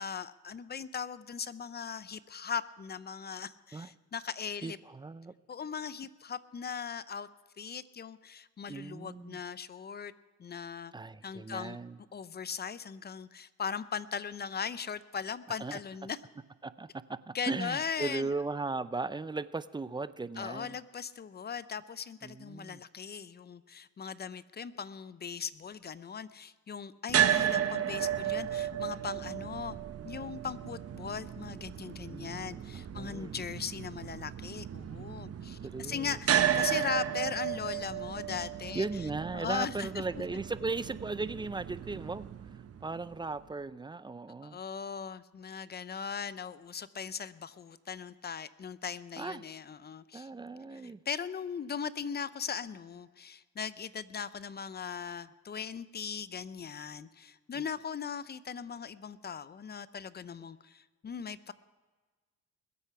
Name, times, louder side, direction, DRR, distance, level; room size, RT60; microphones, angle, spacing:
voice 1, 0.0-4.8 5.5-7.3 7.6-10.1 10.4-10.9 11.2-11.8 12.1-16.2 17.3-18.3 20.4-29.8 30.0-38.9 39.3-40.0 44.4-50.3 50.7-61.5, left 6 dB, 35° left, 16 dB, 0.6 m, -39 dB
voice 2, 4.6-5.3 8.7-9.4 10.9-12.0 15.6-15.8 16.6-20.8 22.2-22.8 32.1-33.4 35.6-36.7 38.7-42.3 42.8-44.6 49.2-49.4 50.1-51.0 57.5-57.6, right 3 dB, 15° right, 16 dB, 0.4 m, -37 dB
sound 1, 27.1-43.2, right 10 dB, 50° right, 1.0 m, -34 dB
21.0 x 8.2 x 5.7 m, 1.4 s
cardioid pair, 90°, 30 cm